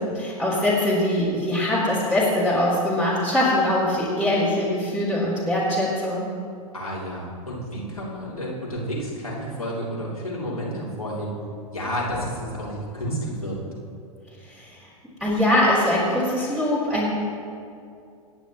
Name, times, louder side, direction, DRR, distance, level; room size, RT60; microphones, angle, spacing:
voice 1, 0.0-6.3 14.5-14.7 15.2-17.1, left 1 dB, 5° right, -9 dB, 3.8 m, -22 dB
voice 2, 6.7-11.3 11.7-13.5, equal, 85° left, -6 dB, 3.6 m, -30 dB
25.5 x 10.5 x 3.1 m, 2.4 s
figure-of-eight pair, 95°, 18 cm